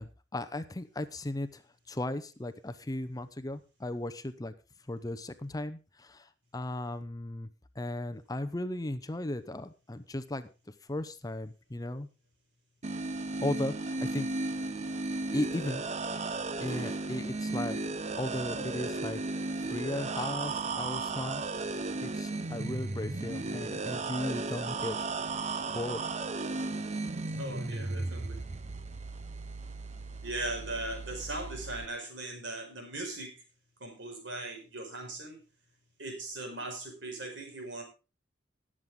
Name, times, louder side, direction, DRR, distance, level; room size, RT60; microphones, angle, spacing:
voice 1, 0.0-1.6 1.9-4.5 4.9-7.5 7.8-10.5 10.9-12.1 13.4-14.3 15.3-15.8 16.6-17.8 18.2-19.2 19.6-25.0 25.3-26.1, left 1 dB, 20° left, 10 dB, 0.7 m, -36 dB
sound 1, 12.8-31.9, right 3 dB, 40° right, 0.7 m, -35 dB
voice 2, 27.3-28.4 30.2-33.4 33.8-35.4 36.0-37.8, right 2 dB, 80° right, 2 dB, 5.1 m, -39 dB
19.0 x 7.5 x 3.7 m, 0.31 s
head